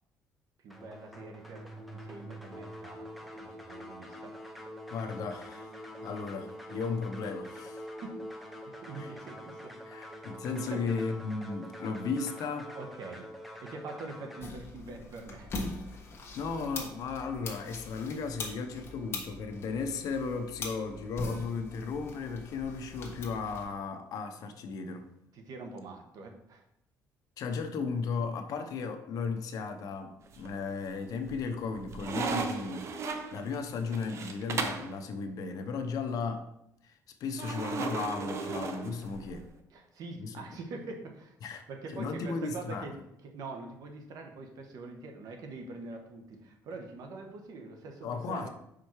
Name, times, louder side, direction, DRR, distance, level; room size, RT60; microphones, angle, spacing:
voice 1, 0.6-4.3 8.0-8.2 8.6-9.7 10.7-10.9 12.7-13.3 13.6-15.5 25.3-26.6 39.7-41.3 41.7-42.9 43.2-48.5, right 3 dB, 60° right, 4 dB, 1.2 m, -44 dB
sound 1, 0.7-14.4, equal, ahead, 0.8 m, -45 dB
voice 2, 4.9-5.7 6.0-7.8 9.0-9.1 9.9-12.7 16.4-25.1 27.4-32.9 33.3-36.5 36.8-39.5 40.1-40.3 41.4-41.6 41.9-43.0 48.0-48.5, left 4 dB, 60° left, 7 dB, 0.8 m, -35 dB
sound 2, 14.4-23.6, left 3 dB, 35° left, 1.4 m, -42 dB
sound 3, 30.3-30.8 31.3-34.9 37.4-39.4, right 4 dB, 45° right, 0.7 m, -36 dB
5.6 x 5.1 x 4.6 m, 0.79 s
cardioid pair, 140°, 7 cm